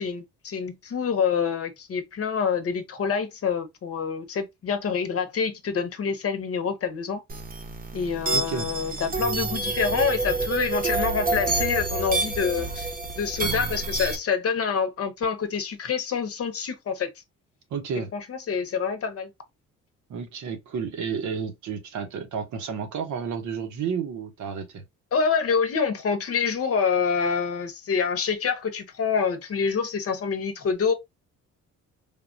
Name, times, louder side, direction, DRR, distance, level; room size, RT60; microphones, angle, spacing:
voice 1, 0.0-7.2 7.9-17.1 18.1-19.3 25.1-30.9, left 6 dB, 50° left, 0.8 m, -26 dB
sound 1, 7.3-14.2, right 3 dB, 30° right, 0.8 m, -28 dB
voice 2, 8.3-8.7 17.7-18.1 20.1-24.8, right 6 dB, 70° right, 0.9 m, -31 dB
3.4 x 2.2 x 2.5 m
cardioid pair, 90°, 30 cm